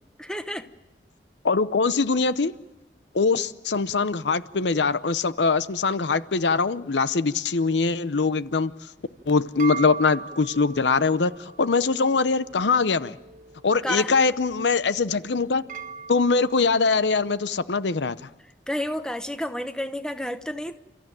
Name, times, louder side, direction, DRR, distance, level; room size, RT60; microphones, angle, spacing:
voice 1, 0.2-0.7 13.8-14.1 18.7-20.7, left 1 dB, 5° left, 1.0 m, -30 dB
voice 2, 1.4-2.5 3.1-8.7 9.3-11.3 11.6-13.1 13.6-15.6 16.1-18.2, left 4 dB, 90° left, 0.7 m, -22 dB
sound 1, 9.0-17.5, right 4 dB, 45° right, 1.3 m, -41 dB
30.0 x 14.0 x 9.1 m
head